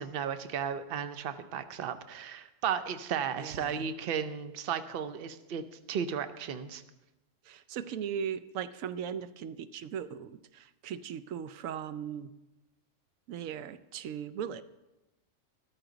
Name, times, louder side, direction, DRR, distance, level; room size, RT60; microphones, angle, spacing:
voice 1, 0.0-6.8, right 7 dB, 50° right, 10 dB, 0.8 m, -34 dB
voice 2, 3.4-3.9 7.4-12.3 13.3-14.6, right 8 dB, 90° right, 13 dB, 1.0 m, -38 dB
13.5 x 13.0 x 3.9 m, 0.98 s
omnidirectional pair, 1.3 m